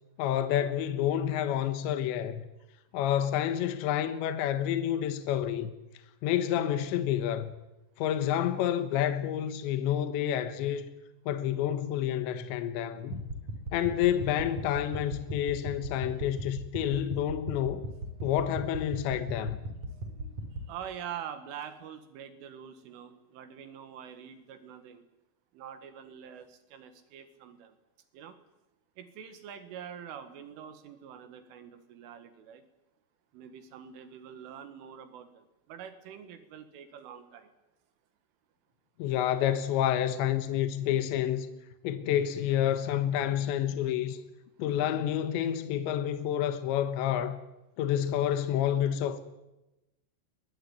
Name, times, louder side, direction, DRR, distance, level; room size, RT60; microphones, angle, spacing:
voice 1, 0.2-2.4 2.9-5.7 6.2-7.5 8.0-10.9 11.3-13.2 13.7-17.8 18.2-19.6 39.0-41.5 41.8-44.2 44.6-47.4 47.8-49.2, left 10 dB, 75° left, 3.3 m, -29 dB
sound 1, 13.1-20.6, right 1 dB, 40° right, 4.6 m, -39 dB
voice 2, 20.7-25.0 25.5-27.8 28.1-28.4 29.0-32.6 33.3-37.5, right 8 dB, 75° right, 4.1 m, -45 dB
23.0 x 21.0 x 9.5 m
omnidirectional pair, 5.9 m